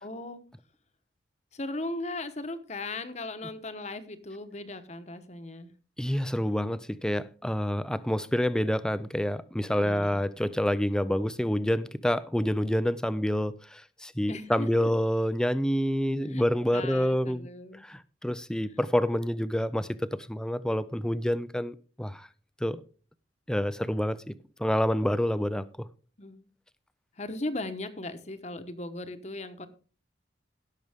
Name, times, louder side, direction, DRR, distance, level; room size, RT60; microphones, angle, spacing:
voice 1, 0.0-0.4 1.5-5.7 9.7-10.2 14.3-14.9 16.2-17.9 18.7-18.8 26.2-26.5 27.2-29.7, left 2 dB, 35° left, 1.1 m, -38 dB
voice 2, 6.0-17.5 17.8-22.3 22.6-22.8 23.5-24.3 24.6-25.9, equal, 5° left, 0.4 m, -28 dB
17.0 x 6.7 x 3.5 m
head